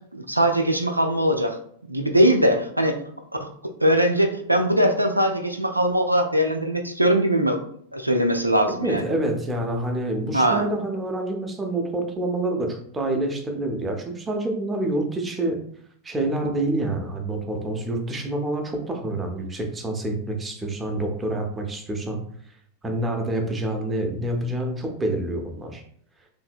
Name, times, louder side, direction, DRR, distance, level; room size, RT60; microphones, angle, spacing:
voice 1, 0.1-1.6 1.9-3.0 3.4-3.5 3.8-7.6 7.9-9.0 10.3-10.7, right 1 dB, 85° right, 5 dB, 0.3 m, -21 dB
voice 2, 8.7-15.6 16.0-22.2 22.8-25.8, right 1 dB, 15° right, 3 dB, 0.5 m, -27 dB
2.7 x 2.6 x 2.4 m, 0.62 s
figure-of-eight pair, 90°, 0 cm